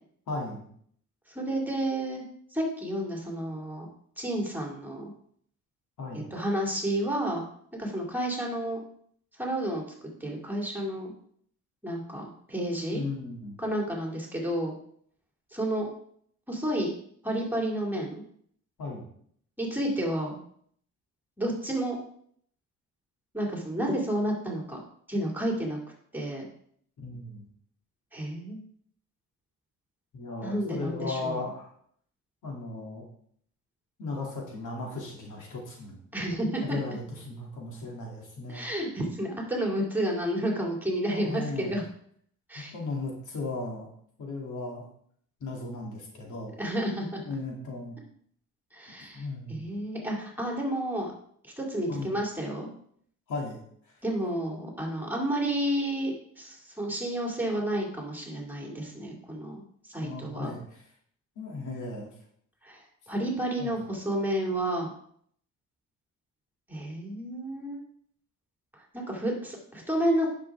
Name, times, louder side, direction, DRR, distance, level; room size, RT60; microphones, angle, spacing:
voice 1, 0.3-0.7 6.0-6.3 12.9-13.6 18.8-19.0 27.0-27.4 30.1-31.7 32.4-33.1 34.0-36.0 36.6-38.7 41.1-41.8 42.6-43.9 44.2-44.9 45.4-46.5 47.2-48.0 49.1-49.7 51.9-52.1 53.3-53.6 60.0-60.8 61.4-62.1 63.6-63.7, left 3 dB, 80° left, -1 dB, 2.6 m, -36 dB
voice 2, 1.3-2.2 2.5-3.9 4.2-5.1 6.1-7.4 7.8-8.8 9.4-9.8 10.2-11.1 11.8-13.0 13.6-14.7 15.5-15.9 16.5-16.9 17.2-18.2 19.6-20.4 21.4-22.0 23.3-24.8 25.1-25.8 26.1-26.4 28.1-28.6 30.4-31.4 36.1-36.8 38.5-41.8 42.5-42.7 46.6-47.2 48.7-51.1 51.4-52.7 54.0-59.6 59.9-60.5 62.6-64.9 66.7-67.8 68.7-70.3, right 1 dB, 5° right, -1 dB, 2.3 m, -31 dB
10.0 x 6.1 x 3.5 m, 0.64 s
cardioid pair, 115°, 30 cm